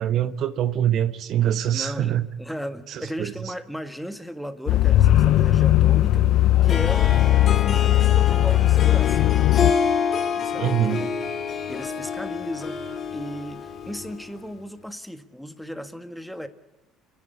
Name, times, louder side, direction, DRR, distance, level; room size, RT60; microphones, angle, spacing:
voice 1, 0.0-2.3 2.9-3.3 10.6-11.1, right 11 dB, 60° right, 1.0 m, -24 dB
voice 2, 1.7-9.2 10.4-11.1 11.7-16.5, equal, ahead, 1.7 m, -36 dB
sound 1, 4.7-9.7, left 14 dB, 65° left, 0.6 m, -18 dB
Harp, 6.7-14.4, left 6 dB, 50° left, 2.0 m, -28 dB
30.0 x 10.5 x 8.3 m
hypercardioid pair, 65°, 0 cm